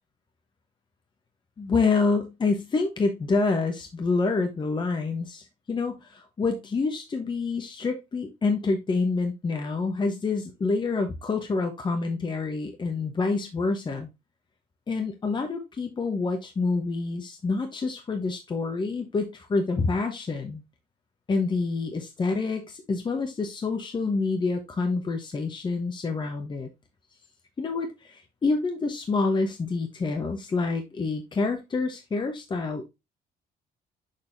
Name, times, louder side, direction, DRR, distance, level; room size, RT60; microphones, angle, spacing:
voice 1, 1.6-14.1 14.9-20.6 21.3-26.7 27.6-32.8, left 3 dB, 25° left, 5 dB, 1.0 m, -27 dB
6.6 x 5.4 x 2.6 m, 0.23 s
cardioid pair, 110°, 17 cm